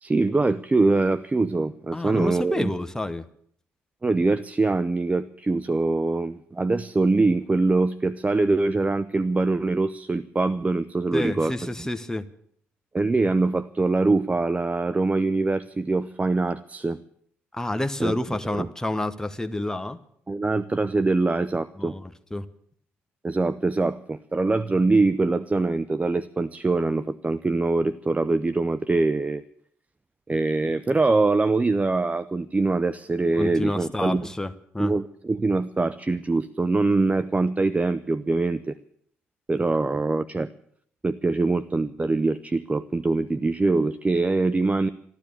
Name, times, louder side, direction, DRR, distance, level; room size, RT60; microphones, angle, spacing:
voice 1, 0.0-2.7 4.0-11.5 12.9-17.0 18.0-18.2 18.5-18.7 20.3-22.0 23.2-29.4 30.3-34.3 34.8-38.8 39.5-40.5 41.0-44.9, right 3 dB, 25° right, 14 dB, 0.6 m, -23 dB
voice 2, 1.9-3.3 11.1-12.3 17.5-20.0 21.8-22.4 33.4-35.0 39.9-40.0, left 1 dB, 10° left, 9 dB, 1.1 m, -29 dB
14.0 x 12.0 x 8.4 m, 0.65 s
hypercardioid pair, 45°, 6 cm